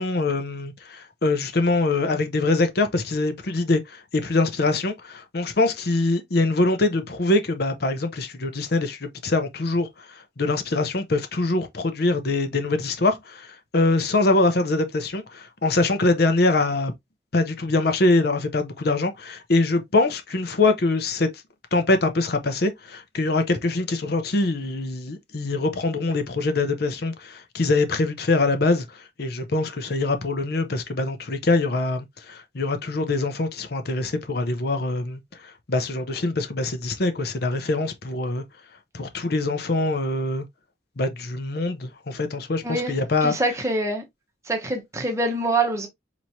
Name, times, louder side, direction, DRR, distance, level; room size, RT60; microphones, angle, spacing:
voice 1, 0.0-16.9 17.3-21.3 21.7-38.4 38.9-40.5 41.0-43.3, left 2 dB, 55° left, 0.7 m, -24 dB
voice 2, 43.2-44.0 44.5-45.9, right 2 dB, 15° right, 0.8 m, -25 dB
4.5 x 3.0 x 2.7 m
head